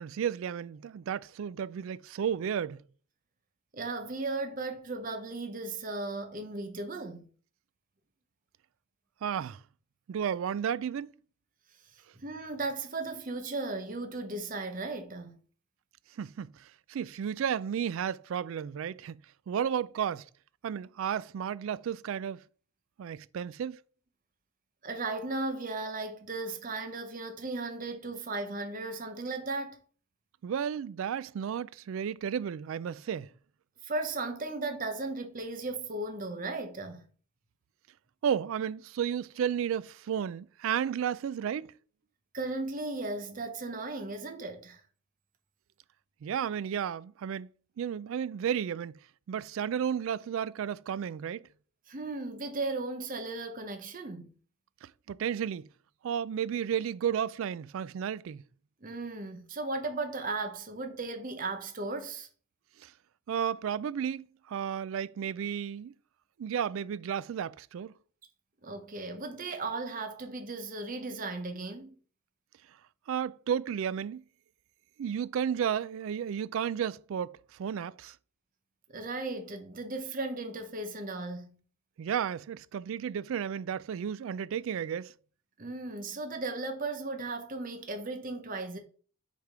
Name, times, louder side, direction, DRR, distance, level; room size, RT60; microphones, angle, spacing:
voice 1, 0.0-2.8 9.2-9.6 10.1-11.1 16.2-19.2 19.5-20.3 20.6-22.4 23.0-23.8 30.4-33.3 38.2-41.7 46.2-47.5 47.8-49.0 49.3-51.4 54.8-55.7 56.0-58.4 62.8-62.9 63.3-65.9 66.4-67.9 73.1-74.2 75.0-78.2 82.0-85.1, right 8 dB, 65° right, 0.3 m, -33 dB
voice 2, 3.7-7.3 11.9-15.3 24.8-29.8 33.8-37.1 42.3-44.8 51.9-54.3 58.8-62.3 68.6-72.0 78.9-81.6 85.6-88.8, right 3 dB, 40° right, 0.8 m, -36 dB
6.6 x 3.5 x 4.7 m
head